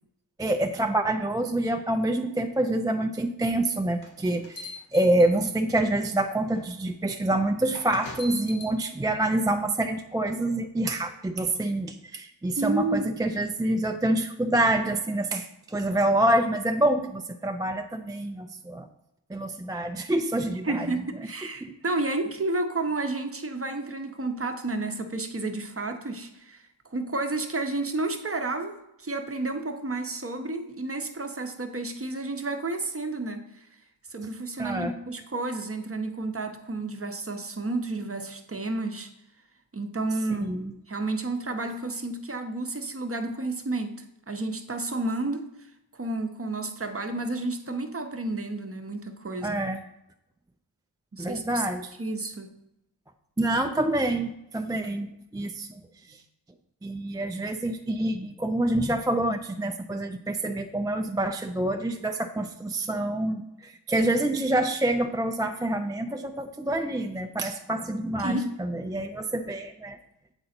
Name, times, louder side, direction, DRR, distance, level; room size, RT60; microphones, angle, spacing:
voice 1, 0.4-18.9 19.3-20.9 21.2-21.3 21.6-21.7 34.6-34.9 40.3-40.7 49.4-49.8 51.2-51.9 53.4-56.2 56.8-70.0, right 1 dB, 10° right, 5 dB, 0.3 m, -27 dB
sound 1, 4.0-5.8 6.6-6.7 7.7-8.8, left 2 dB, 70° left, 1.3 m, -42 dB
voice 2, 12.6-13.1 20.6-26.6 26.9-33.7 34.1-39.1 39.7-40.5 40.9-45.5 45.9-49.6 51.1-51.6 52.0-52.5 56.1-56.2 68.2-68.5, right 2 dB, 30° right, 6 dB, 0.8 m, -31 dB
7.9 x 3.8 x 4.3 m, 0.85 s
cardioid pair, 50°, 44 cm